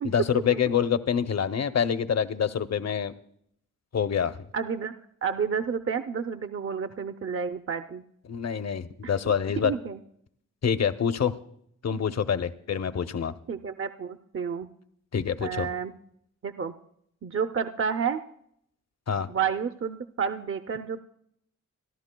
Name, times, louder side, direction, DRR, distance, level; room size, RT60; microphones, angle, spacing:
voice 1, 0.0-3.1 3.9-4.4 8.3-9.7 10.6-11.3 11.8-13.3 15.1-15.7 19.1-19.3, left 7 dB, 55° left, 11 dB, 0.7 m, -26 dB
voice 2, 4.5-4.9 5.2-8.0 9.6-10.0 13.5-14.7 15.4-15.9 16.4-16.7 17.2-18.2 19.3-21.0, right 6 dB, 45° right, 8 dB, 0.6 m, -30 dB
28.5 x 11.0 x 2.2 m, 0.70 s
cardioid pair, 55°, 31 cm